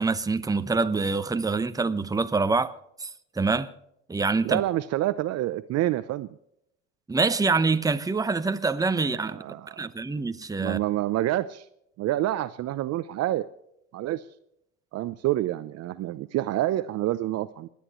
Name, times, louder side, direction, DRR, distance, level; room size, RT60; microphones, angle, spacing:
voice 1, 0.0-2.7 3.0-3.7 4.1-4.6 7.1-9.4 9.8-10.8, right 4 dB, 10° right, 0.9 m, -25 dB
voice 2, 4.4-6.3 9.3-9.9 10.6-11.6 12.0-13.5 13.9-14.2 14.9-17.7, right 14 dB, 45° right, 0.7 m, -27 dB
28.0 x 10.0 x 3.1 m
hypercardioid pair, 85°, 37 cm